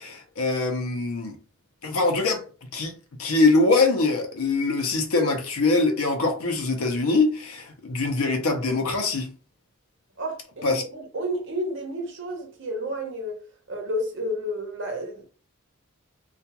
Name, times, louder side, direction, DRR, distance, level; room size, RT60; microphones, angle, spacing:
voice 1, 0.0-1.4 1.8-2.4 2.7-2.9 3.2-9.3 10.6-10.8, left 3 dB, 90° left, 0.7 m, -23 dB
voice 2, 10.2-13.4 13.7-15.3, equal, 55° right, 0.8 m, -31 dB
2.4 x 2.3 x 2.8 m
head